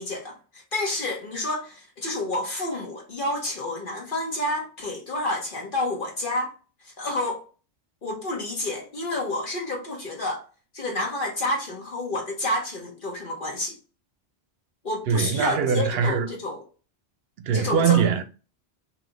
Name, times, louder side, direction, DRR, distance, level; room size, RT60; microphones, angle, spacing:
voice 1, 0.0-6.5 7.0-7.4 8.0-10.4 10.7-13.8 14.8-16.6 17.5-18.1, left 1 dB, 55° left, 1.1 m, -29 dB
voice 2, 15.1-16.3 17.4-18.2, right 7 dB, 70° right, 0.8 m, -22 dB
3.2 x 2.9 x 3.8 m
omnidirectional pair, 1.1 m